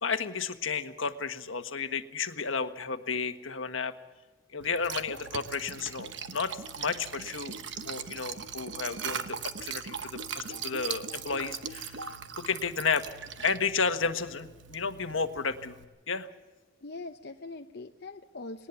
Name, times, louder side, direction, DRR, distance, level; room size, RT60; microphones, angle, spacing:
voice 1, 0.0-3.9 4.5-12.0 12.3-13.0 13.4-15.8 16.1-16.3, left 5 dB, 75° left, 8 dB, 1.4 m, -32 dB
Liquid, 4.6-15.8, right 7 dB, 60° right, 1.1 m, -40 dB
voice 2, 16.8-18.7, left 3 dB, 55° left, 4 dB, 0.8 m, -42 dB
20.0 x 19.0 x 7.1 m, 1.2 s
head